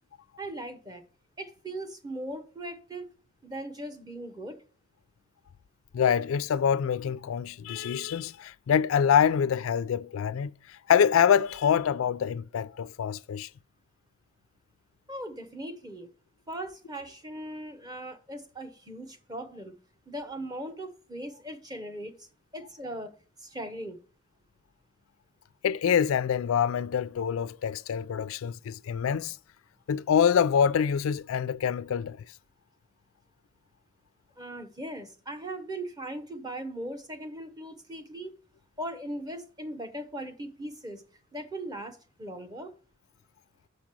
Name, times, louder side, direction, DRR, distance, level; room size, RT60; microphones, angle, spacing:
voice 1, 0.4-1.0 1.4-3.1 3.4-4.6 15.1-16.1 16.5-19.7 20.1-22.3 22.5-23.1 23.4-24.0 34.4-38.3 38.8-41.0 41.3-42.7, right 1 dB, 20° right, 0.8 m, -39 dB
voice 2, 5.9-13.5 25.6-29.4 29.9-32.2, left 8 dB, 90° left, 0.3 m, -25 dB
6.6 x 5.1 x 6.0 m
head